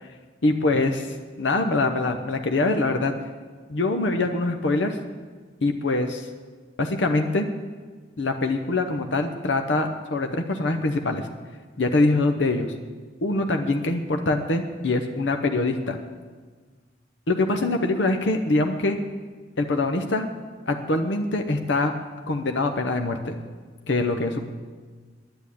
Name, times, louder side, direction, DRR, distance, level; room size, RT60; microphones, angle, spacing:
voice 1, 0.4-3.1 3.7-5.0 5.6-6.3 6.8-7.5 8.2-11.3 11.8-12.7 13.2-16.0 17.3-19.0 19.6-20.3 20.7-21.9 22.3-23.4 23.9-24.4, left 2 dB, 80° left, 5 dB, 0.8 m, -24 dB
9.9 x 9.9 x 8.4 m, 1.5 s
head